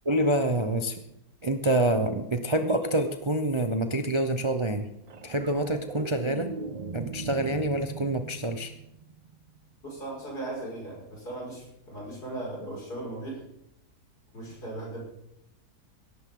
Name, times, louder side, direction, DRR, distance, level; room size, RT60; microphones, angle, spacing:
voice 1, 0.0-1.0 1.4-4.9 5.2-6.5 6.9-8.7, right 1 dB, 30° right, 6 dB, 0.6 m, -26 dB
sound 1, 5.1-9.6 12.0-12.1, right 4 dB, 80° right, 0.3 m, -40 dB
voice 2, 9.8-13.4 14.3-15.0, right 2 dB, 70° left, -4 dB, 6.6 m, -37 dB
17.5 x 13.5 x 3.9 m, 0.79 s
omnidirectional pair, 1.8 m